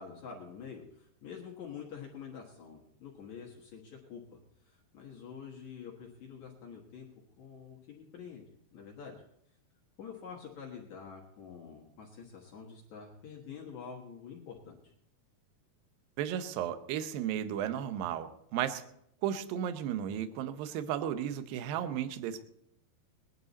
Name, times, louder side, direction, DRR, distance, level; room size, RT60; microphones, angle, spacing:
voice 1, 0.0-7.1 7.4-8.5 8.7-9.2 10.0-14.8, left 6 dB, 60° left, -2 dB, 2.2 m, -47 dB
voice 2, 16.2-18.8 19.2-22.4, right 10 dB, 75° right, 10 dB, 2.3 m, -34 dB
19.0 x 11.0 x 4.1 m, 0.74 s
omnidirectional pair, 4.8 m